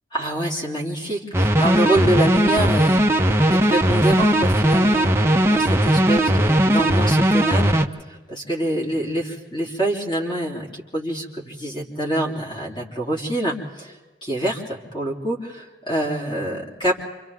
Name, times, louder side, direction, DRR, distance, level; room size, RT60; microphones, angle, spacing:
voice 1, 0.1-3.0 3.5-7.7 8.1-13.9 14.2-17.1, right 1 dB, 30° left, -1 dB, 3.5 m, -26 dB
sound 1, 1.3-7.9, right 1 dB, 15° right, 0.9 m, -18 dB
28.5 x 26.5 x 3.7 m, 1.3 s
head